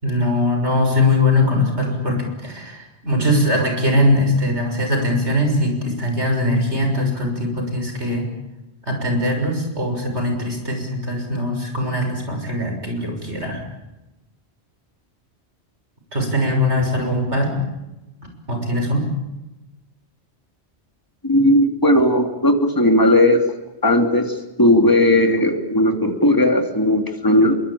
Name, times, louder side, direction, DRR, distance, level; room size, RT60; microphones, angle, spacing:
voice 1, 0.0-8.3 8.9-13.6 16.1-17.6 18.5-19.1, left 1 dB, 90° right, 4 dB, 6.7 m, -21 dB
voice 2, 21.2-23.4 23.8-27.6, left 1 dB, 20° left, 4 dB, 2.9 m, -16 dB
26.0 x 23.0 x 8.6 m, 1.0 s
omnidirectional pair, 1.1 m